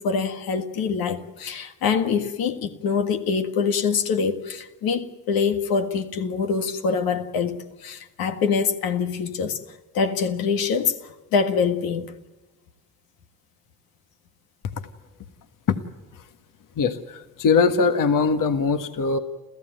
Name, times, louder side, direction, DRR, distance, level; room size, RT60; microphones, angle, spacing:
voice 1, 0.0-9.6 9.9-12.1, left 5 dB, 85° left, 1.8 m, -25 dB
voice 2, 16.8-19.2, left 5 dB, 65° left, 1.6 m, -21 dB
29.0 x 14.5 x 9.1 m
cardioid pair, 80°, 35 cm